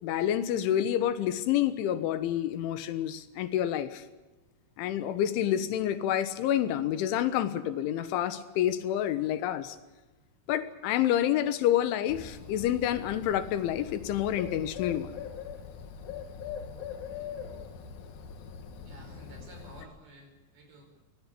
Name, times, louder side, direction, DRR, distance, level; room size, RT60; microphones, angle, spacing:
voice 1, 0.0-4.0 4.8-9.8 10.5-15.2, left 11 dB, 90° left, 11 dB, 3.8 m, -28 dB
Bird, 12.1-19.8, left 7 dB, 55° left, 2.3 m, -42 dB
voice 2, 18.8-21.0, right 1 dB, 55° right, 4 dB, 7.1 m, -52 dB
24.5 x 18.0 x 8.4 m, 1.1 s
omnidirectional pair, 5.3 m